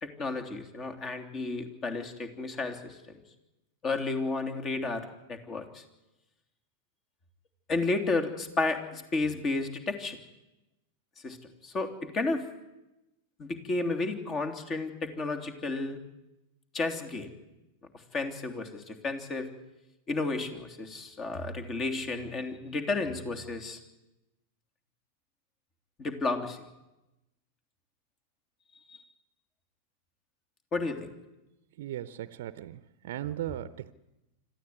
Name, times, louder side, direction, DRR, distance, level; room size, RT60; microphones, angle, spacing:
voice 1, 0.0-3.0 3.8-5.8 7.7-10.2 11.2-11.4 11.6-12.4 13.4-16.0 16.7-17.3 18.1-19.5 20.1-23.8 26.0-26.6 28.9-29.0 30.7-31.1, left 3 dB, 30° left, 6 dB, 3.2 m, -32 dB
voice 2, 31.8-33.9, right 12 dB, 60° right, 15 dB, 0.8 m, -37 dB
25.5 x 14.5 x 9.7 m, 0.98 s
figure-of-eight pair, 95°, 0 cm